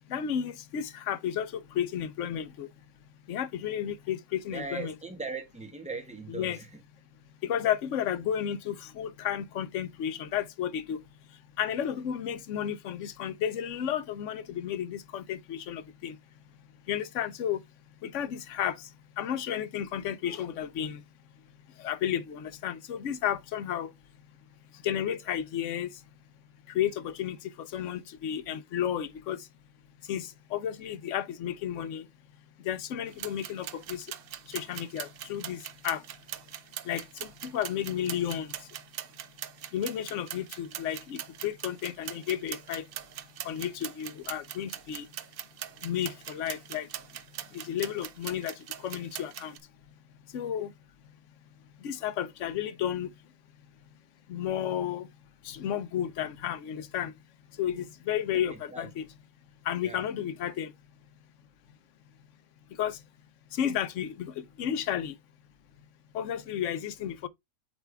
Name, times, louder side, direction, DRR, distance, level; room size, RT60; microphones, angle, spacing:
voice 1, 0.1-2.7 3.3-4.9 6.3-6.6 7.4-11.0 11.6-16.2 16.9-17.6 18.0-18.8 19.2-21.0 21.8-23.9 24.8-25.9 26.7-29.5 30.1-32.1 32.6-34.1 34.5-36.0 36.9-38.5 39.7-42.9 43.4-45.1 45.8-46.9 47.5-49.6 50.3-50.7 51.8-53.1 54.3-55.1 55.4-57.1 57.6-59.1 59.7-60.7 62.8-63.0 63.5-65.1 66.1-67.3, left 10 dB, 60° left, 1.0 m, -32 dB
voice 2, 4.5-6.8 58.3-58.9 59.8-60.0, right 4 dB, 5° right, 1.3 m, -39 dB
sound 1, 33.1-49.6, right 10 dB, 75° right, 0.5 m, -42 dB
8.3 x 3.5 x 3.3 m
omnidirectional pair, 1.5 m